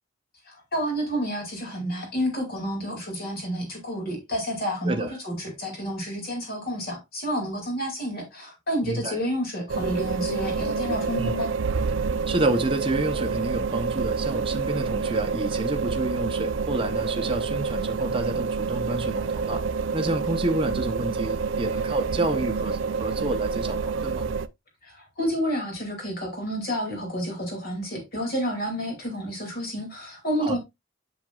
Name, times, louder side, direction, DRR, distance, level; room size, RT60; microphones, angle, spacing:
voice 1, 0.5-11.5 24.8-30.6, equal, 45° left, 2.5 m, -30 dB
voice 2, 8.8-9.2 11.2-11.4 12.3-19.6 19.9-24.3 30.4-30.6, right 2 dB, 25° right, 0.8 m, -29 dB
sound 1, 9.7-24.5, right 5 dB, 60° right, 0.4 m, -28 dB
7.8 x 6.5 x 2.3 m
head